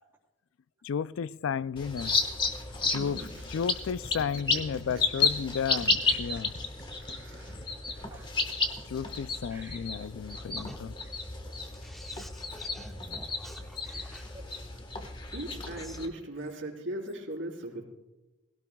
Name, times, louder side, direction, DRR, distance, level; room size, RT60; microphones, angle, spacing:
voice 1, 0.8-2.2 2.9-3.2 3.5-6.5 8.8-10.9, left 7 dB, 90° left, 0.4 m, -33 dB
sound 1, 1.8-16.1, left 4 dB, 25° left, 1.3 m, -32 dB
voice 2, 2.8-3.4 6.9-7.8 15.3-17.8, right 1 dB, 75° right, 4.2 m, -39 dB
sound 2, 3.8-8.8, left 1 dB, 50° left, 2.4 m, -49 dB
voice 3, 6.0-6.4 7.4-8.3 9.5-9.9 11.4-11.5 12.5-12.6 13.5-13.6 13.8-14.8, right 2 dB, 15° right, 3.3 m, -54 dB
voice 4, 11.8-14.3 15.8-16.0, equal, ahead, 1.5 m, -49 dB
20.5 x 17.0 x 2.3 m
head